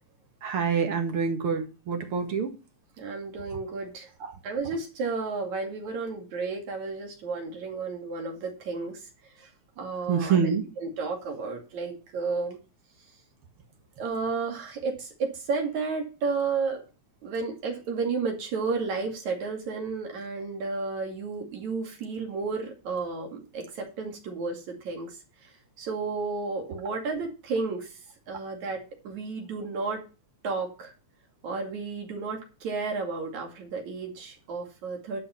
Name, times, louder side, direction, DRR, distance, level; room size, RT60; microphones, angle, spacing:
voice 1, 0.4-2.6 4.2-4.3 10.1-10.7, right 6 dB, 50° right, 4 dB, 2.4 m, -26 dB
voice 2, 3.0-4.1 4.4-9.0 9.4-9.5 9.8-10.4 10.8-12.6 14.0-16.8 17.2-25.2 25.8-28.0 28.3-30.0 30.4-30.9 31.4-35.2, right 4 dB, 75° right, 2 dB, 3.7 m, -32 dB
11.5 x 5.4 x 5.8 m, 0.32 s
omnidirectional pair, 3.3 m